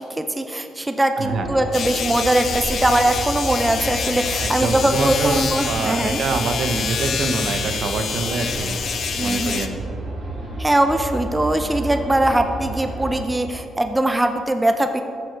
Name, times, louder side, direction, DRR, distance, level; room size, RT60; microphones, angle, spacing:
voice 1, 0.0-6.2 9.2-9.6 10.6-15.0, right 1 dB, 15° right, 7 dB, 0.5 m, -21 dB
voice 2, 1.2-1.5 4.4-8.8 9.2-9.8, right 4 dB, 65° right, 7 dB, 0.8 m, -25 dB
sound 1, 1.3-13.2, right 1 dB, 40° right, 2.2 m, -31 dB
sound 2, 1.7-9.7, left 7 dB, 60° left, 0.6 m, -27 dB
9.6 x 6.6 x 4.5 m, 2.6 s
cardioid pair, 90°, 0 cm